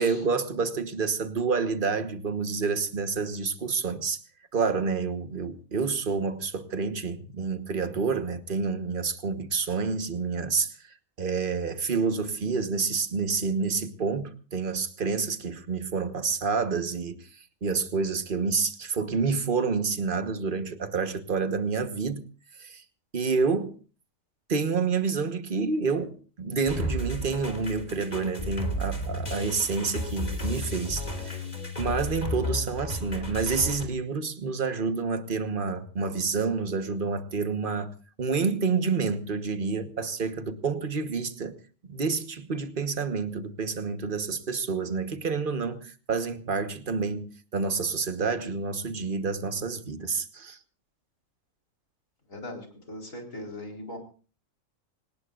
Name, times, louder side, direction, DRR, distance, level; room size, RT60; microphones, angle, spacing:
voice 1, 0.0-4.2 4.5-10.8 11.2-17.3 17.6-22.2 22.6-22.8 23.1-23.7 24.5-31.4 31.8-37.9 38.2-41.6 41.9-50.6, right 5 dB, 40° right, 1.5 m, -28 dB
sound 1, 26.7-33.9, left 1 dB, 30° left, 3.4 m, -33 dB
voice 2, 52.3-54.0, left 1 dB, 80° left, 4.7 m, -39 dB
25.5 x 19.0 x 2.5 m
omnidirectional pair, 1.4 m